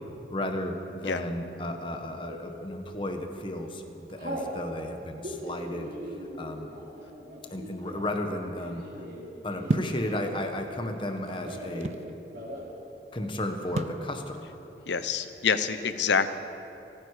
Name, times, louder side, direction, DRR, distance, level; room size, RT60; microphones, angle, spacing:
voice 1, 0.3-5.9 6.4-6.7 7.5-8.8 9.4-11.9 13.1-14.4, left 1 dB, 30° left, 5 dB, 1.2 m, -33 dB
Telephone, 2.0-2.5 3.1-3.4 3.7-4.5 5.1-10.6 10.9-12.0 12.2-12.7 13.0-13.1 13.4-13.9, equal, 60° right, 4.1 m, -40 dB
sound 1, 9.7-10.0 10.9-12.1 13.8-14.0, right 2 dB, 40° right, 0.4 m, -30 dB
voice 2, 14.9-16.3, left 6 dB, 90° left, 12 dB, 0.7 m, -26 dB
28.0 x 9.6 x 4.9 m, 2.9 s
head